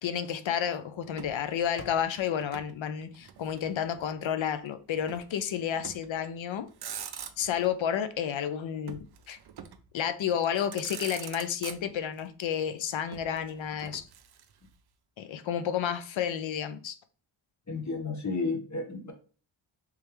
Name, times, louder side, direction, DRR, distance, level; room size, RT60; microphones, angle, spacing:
voice 1, 0.0-6.7 7.4-9.4 9.9-14.0 15.2-17.0, left 9 dB, 65° left, 0.6 m, -31 dB
Motor vehicle (road), 1.1-2.7 3.0-4.1 5.1-5.3 5.7-6.2 6.6-7.7 8.9-9.9 10.4-10.5 10.7-12.2 13.1-14.7, right 8 dB, 50° right, 0.5 m, -44 dB
voice 2, 17.7-19.1, left 3 dB, 35° left, 1.1 m, -32 dB
3.5 x 3.2 x 3.1 m
cardioid pair, 70°, 49 cm